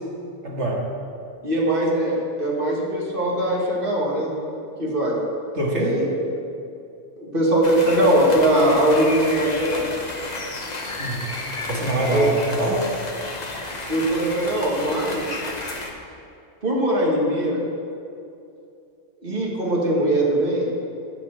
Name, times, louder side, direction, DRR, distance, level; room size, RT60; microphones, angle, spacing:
voice 1, 0.4-0.9 5.5-6.0 11.0-11.3 11.7-12.9, right 1 dB, 75° right, -2 dB, 2.1 m, -24 dB
voice 2, 1.4-4.3 4.8-5.2 5.7-6.1 7.2-9.9 12.1-12.4 13.9-15.3 16.6-17.6 19.2-20.7, right 1 dB, 50° right, -3 dB, 2.1 m, -21 dB
sound 1, 7.6-15.9, left 2 dB, 40° left, 1.0 m, -32 dB
9.6 x 5.8 x 7.7 m, 2.6 s
omnidirectional pair, 1.2 m